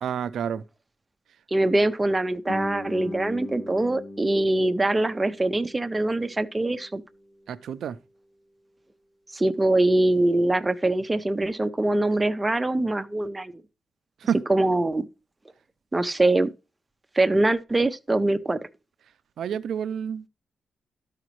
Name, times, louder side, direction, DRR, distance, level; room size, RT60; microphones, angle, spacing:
voice 1, 0.0-0.6 7.5-8.0 14.2-14.4 19.4-20.3, right 8 dB, 80° right, 0.4 m, -29 dB
voice 2, 1.5-7.0 9.3-13.5 14.5-15.1 15.9-16.5 17.2-18.6, right 2 dB, 15° right, 0.5 m, -23 dB
Guitar, 2.5-7.8, left 2 dB, 65° left, 1.8 m, -40 dB
12.5 x 4.9 x 3.0 m
wide cardioid pair, 140°, 0 cm